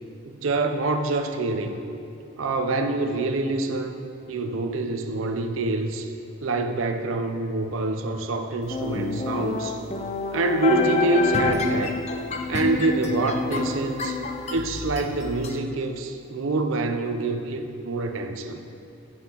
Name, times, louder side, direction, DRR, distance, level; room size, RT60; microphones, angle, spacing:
voice 1, 0.3-1.8 2.4-4.0 4.3-6.1 6.4-9.8 10.3-12.0 12.5-14.2 14.5-18.6, right 2 dB, 85° right, 6 dB, 0.5 m, -26 dB
sound 1, 8.7-15.5, left 3 dB, 35° left, 0.4 m, -28 dB
9.6 x 5.5 x 2.9 m, 2.6 s
head